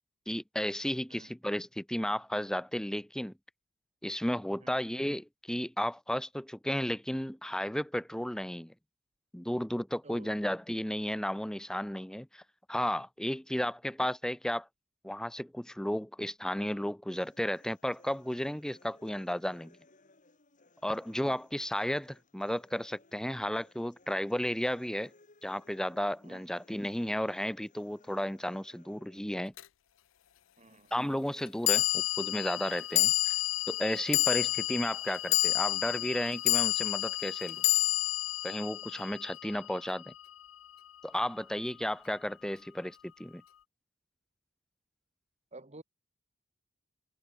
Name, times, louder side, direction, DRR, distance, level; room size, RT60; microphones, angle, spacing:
voice 1, 0.3-3.3 4.0-8.7 9.3-12.4 12.7-14.7 15.0-19.8 20.8-25.1 25.4-29.5 30.9-33.4 33.7-37.6 38.4-40.1 41.0-43.4, equal, 5° left, 0.5 m, -33 dB
voice 2, 10.0-10.4 26.2-26.5 30.6-30.9 45.5-45.8, right 2 dB, 35° right, 2.2 m, -51 dB
sound 1, 17.2-29.2, left 2 dB, 40° left, 4.1 m, -63 dB
sound 2, 29.6-29.7 31.7-40.1, left 18 dB, 75° left, 0.5 m, -30 dB
head